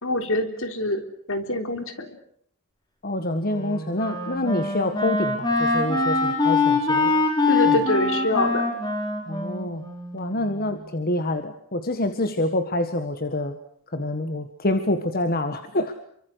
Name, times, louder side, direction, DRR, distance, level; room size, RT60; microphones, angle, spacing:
voice 1, 0.0-2.2 7.5-8.7, left 1 dB, 60° left, 7 dB, 3.6 m, -25 dB
voice 2, 3.0-7.2 9.3-9.8 10.1-13.6 13.9-15.9, left 1 dB, 45° left, 9 dB, 1.6 m, -26 dB
Wind instrument woodwind instrument, 3.5-10.6, left 3 dB, 20° left, 6.6 m, -24 dB
28.5 x 24.5 x 6.5 m, 0.67 s
head